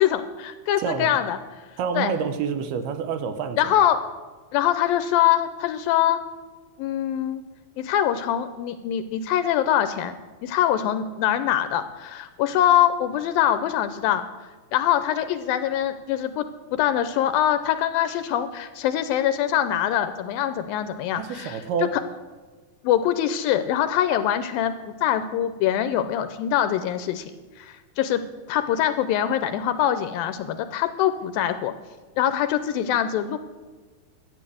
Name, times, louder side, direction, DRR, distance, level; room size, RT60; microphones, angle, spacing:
voice 1, 0.0-1.4 2.0-2.1 3.6-4.0 4.5-6.2 6.8-7.4 7.8-10.2 10.4-14.2 14.7-21.6 22.8-27.3 27.6-28.2 28.5-31.7 32.2-33.4, left 11 dB, 80° left, 11 dB, 2.2 m, -23 dB
voice 2, 0.8-1.2 1.8-3.8 21.1-22.0, right 6 dB, 80° right, 10 dB, 2.8 m, -28 dB
12.5 x 9.7 x 7.7 m, 1.3 s
omnidirectional pair, 4.5 m